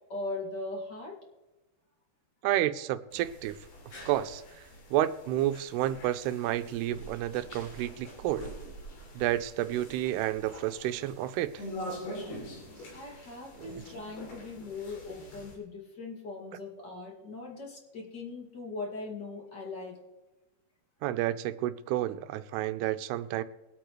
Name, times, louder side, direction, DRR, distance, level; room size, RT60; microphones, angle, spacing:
voice 1, 0.1-1.1 12.9-20.0, left 3 dB, 35° left, 2.3 m, -40 dB
voice 2, 2.4-3.6 4.1-4.4 4.9-8.5 9.1-11.6 13.6-13.8 21.0-23.4, right 13 dB, 90° right, 2.7 m, -30 dB
sound 1, 3.1-15.6, equal, 85° left, 5.0 m, -45 dB
22.5 x 8.5 x 3.2 m
omnidirectional pair, 4.6 m